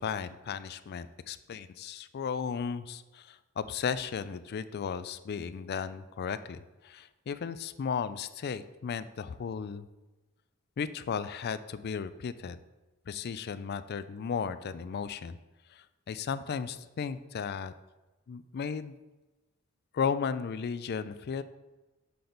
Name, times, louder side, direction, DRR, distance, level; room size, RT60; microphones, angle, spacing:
voice 1, 0.0-9.9 10.8-12.6 13.1-15.4 15.7-17.7 18.3-19.0 19.9-21.4, left 6 dB, 45° left, 13 dB, 0.3 m, -35 dB
6.8 x 5.9 x 3.9 m, 1.1 s
head